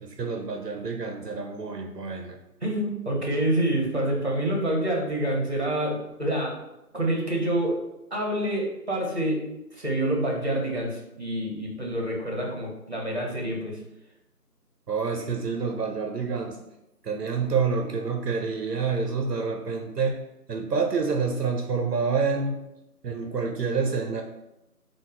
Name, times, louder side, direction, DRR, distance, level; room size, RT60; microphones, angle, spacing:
voice 1, 0.0-2.4 14.9-16.6 17.0-20.2 20.5-22.6 23.0-24.2, right 5 dB, 80° right, 3 dB, 0.6 m, -28 dB
voice 2, 2.6-6.5 6.9-7.8 8.1-9.4 9.7-13.8, right 1 dB, 45° right, -1 dB, 0.8 m, -27 dB
4.9 x 2.0 x 2.3 m, 0.90 s
figure-of-eight pair, 170°, 48 cm